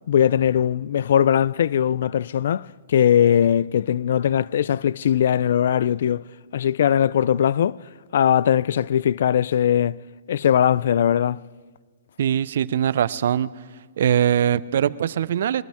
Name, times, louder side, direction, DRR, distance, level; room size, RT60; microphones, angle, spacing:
voice 1, 0.1-6.2 6.5-7.8 8.1-10.0 10.3-11.4, left 9 dB, 65° left, 0.3 m, -20 dB
voice 2, 12.2-13.5 14.0-15.6, right 9 dB, 60° right, 0.4 m, -21 dB
23.0 x 12.5 x 3.5 m
hypercardioid pair, 145°, 0 cm